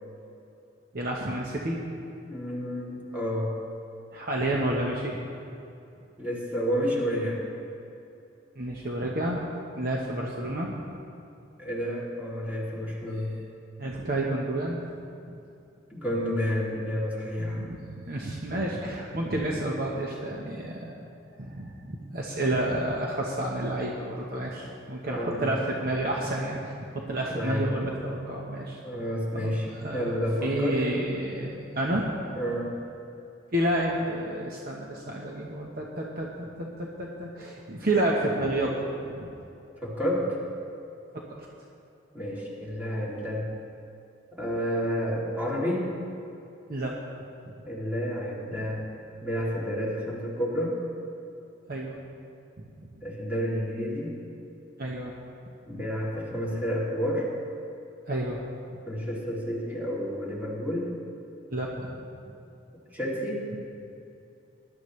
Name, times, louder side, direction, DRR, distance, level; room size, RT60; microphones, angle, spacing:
voice 1, 0.9-2.0 4.1-5.2 8.6-9.5 9.7-10.8 13.2-13.3 13.8-14.8 15.3-15.4 17.4-20.9 21.4-28.8 29.3-32.1 33.5-38.8 39.1-39.3 41.1-41.2 46.7-46.9 48.6-48.7 51.7-52.0 52.8-52.9 54.8-55.1 55.7-55.8 58.1-58.4 61.5-62.0, right 1 dB, 50° right, -2 dB, 1.1 m, -30 dB
voice 2, 2.3-3.5 6.2-7.5 11.6-13.3 15.9-17.7 25.1-25.4 27.3-27.7 28.8-30.8 32.4-32.7 39.8-40.4 42.1-43.5 44.3-45.9 47.7-48.8 49.2-50.8 53.0-54.1 55.7-57.3 58.9-60.9 62.9-63.5, equal, 10° right, -6 dB, 2.8 m, -30 dB
20.5 x 12.0 x 3.2 m, 2.7 s
head